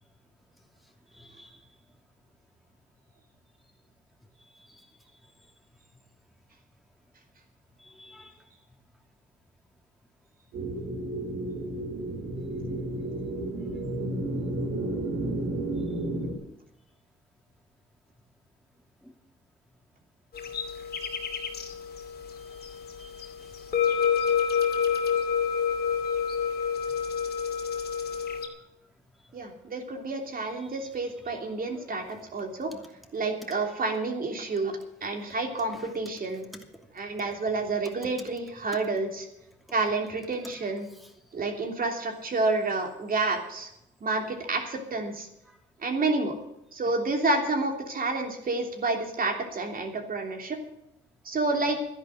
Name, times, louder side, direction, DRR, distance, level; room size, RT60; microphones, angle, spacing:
voice 1, 1.1-1.6 4.6-4.8 7.8-8.3 19.0-19.1 22.7-23.3 35.7-35.9 45.5-45.6, left 1 dB, ahead, 2 dB, 2.7 m, -52 dB
sound 1, 10.5-16.3, right 1 dB, 75° right, 4.0 m, -32 dB
sound 2, 20.3-28.5, left 7 dB, 55° left, 2.6 m, -28 dB
voice 2, 29.3-32.7 33.1-36.5 36.9-39.3 39.7-40.9 41.3-43.7 44.0-45.3 45.8-46.3 46.7-50.6 51.2-51.8, right 3 dB, 45° right, 3 dB, 3.2 m, -29 dB
12.5 x 10.5 x 7.7 m, 0.84 s
cardioid pair, 90°, 20 cm